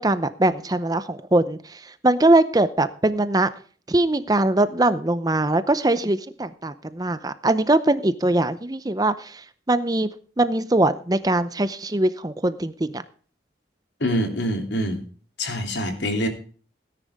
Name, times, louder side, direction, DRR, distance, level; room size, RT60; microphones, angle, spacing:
voice 1, 0.0-3.5 3.9-10.1 10.4-13.0, right 2 dB, 20° right, 13 dB, 0.7 m, -22 dB
voice 2, 14.0-15.0 15.4-16.3, equal, 75° left, 4 dB, 3.1 m, -25 dB
17.5 x 10.0 x 3.6 m, 0.43 s
head